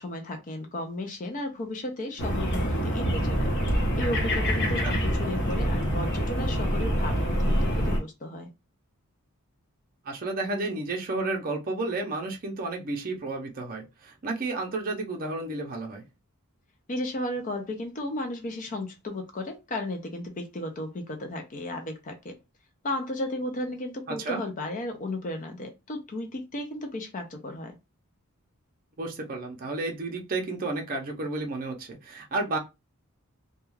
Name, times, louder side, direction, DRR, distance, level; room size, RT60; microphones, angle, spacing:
voice 1, 0.0-8.5 16.9-22.3 22.8-27.8, left 1 dB, 35° left, 0.4 m, -34 dB
sound 1, 2.2-8.0, equal, 50° left, 0.8 m, -26 dB
voice 2, 10.0-16.0 24.1-24.4 29.0-32.6, right 2 dB, 40° right, 0.5 m, -32 dB
2.3 x 2.2 x 3.1 m
head